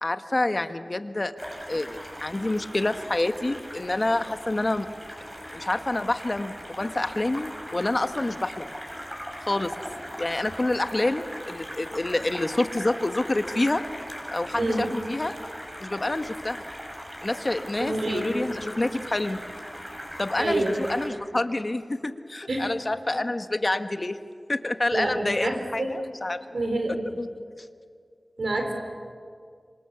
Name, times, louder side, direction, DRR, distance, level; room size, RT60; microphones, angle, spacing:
voice 1, 0.0-1.3 1.7-4.9 5.5-8.7 9.5-9.7 10.2-13.8 14.3-15.3 15.8-16.6 17.2-19.4 20.2-24.2 24.5-26.5 27.2-27.3, left 2 dB, 45° left, 9 dB, 1.3 m, -27 dB
sound 1, 1.4-21.1, equal, 5° right, 6.5 m, -39 dB
voice 2, 17.8-18.2 20.4-20.7 22.5-22.7 24.9-25.9 26.5-27.1 28.4-28.7, right 2 dB, 85° right, 4 dB, 4.3 m, -27 dB
26.0 x 26.0 x 7.0 m, 2.2 s
wide cardioid pair, 50°, 0 cm